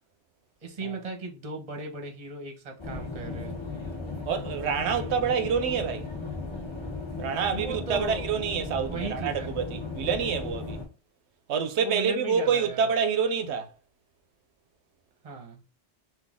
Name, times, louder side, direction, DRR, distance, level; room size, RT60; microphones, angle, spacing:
voice 1, 0.6-3.6 7.1-8.3 8.9-9.5 11.8-12.9 15.2-15.6, right 3 dB, 35° right, 0.9 m, -37 dB
sound 1, 2.8-10.8, left 3 dB, 25° left, 1.5 m, -36 dB
voice 2, 4.3-6.1 7.2-10.8 11.5-13.7, right 6 dB, 70° right, 0.8 m, -27 dB
4.0 x 2.6 x 3.5 m
omnidirectional pair, 1.2 m